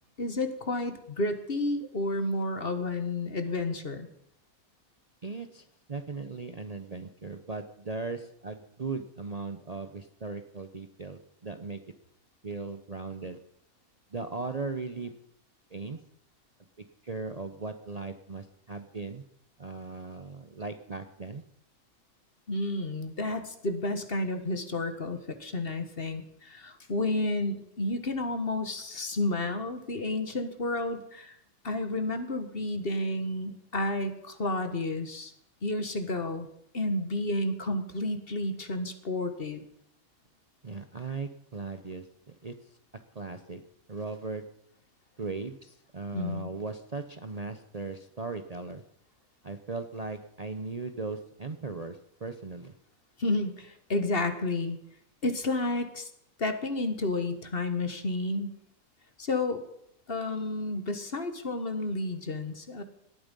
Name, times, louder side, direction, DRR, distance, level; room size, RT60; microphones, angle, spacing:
voice 1, 0.2-4.1 22.5-31.4 31.6-35.3 35.6-36.5 36.7-39.6 46.1-46.5 53.2-54.8 55.2-56.1 56.4-58.5 59.2-59.6 60.1-62.8, left 2 dB, 40° left, 9 dB, 1.6 m, -31 dB
voice 2, 5.2-11.8 12.4-13.4 14.1-15.1 15.7-16.0 17.0-19.2 19.6-21.4 40.6-42.6 43.1-43.6 43.9-44.4 45.2-48.8 49.4-52.7, right 4 dB, 35° right, 8 dB, 0.8 m, -38 dB
18.5 x 12.5 x 5.4 m, 0.75 s
omnidirectional pair, 1.5 m